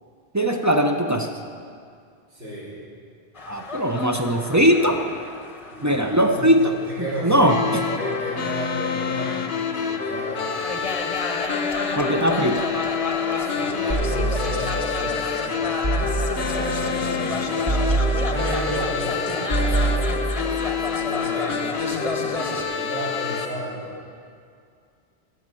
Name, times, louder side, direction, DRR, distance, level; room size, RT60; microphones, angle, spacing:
voice 1, 0.3-1.3 3.5-5.0 5.8-7.6 12.0-12.6, equal, 20° right, 4 dB, 0.5 m, -20 dB
voice 2, 2.3-2.7 5.7-9.5 9.7-10.7 13.3-15.7 16.3-20.0 21.0-23.9, equal, 80° right, -15 dB, 4.6 m, -33 dB
sound 1, 3.4-22.6, left 3 dB, 35° left, 0.9 m, -32 dB
sound 2, 7.5-23.5, left 6 dB, 65° left, 1.0 m, -28 dB
sound 3, 13.9-14.9 15.8-16.7 17.7-18.7 19.5-20.6, right 3 dB, 35° right, 1.0 m, -25 dB
15.0 x 6.2 x 7.7 m, 2.2 s
omnidirectional pair, 1.1 m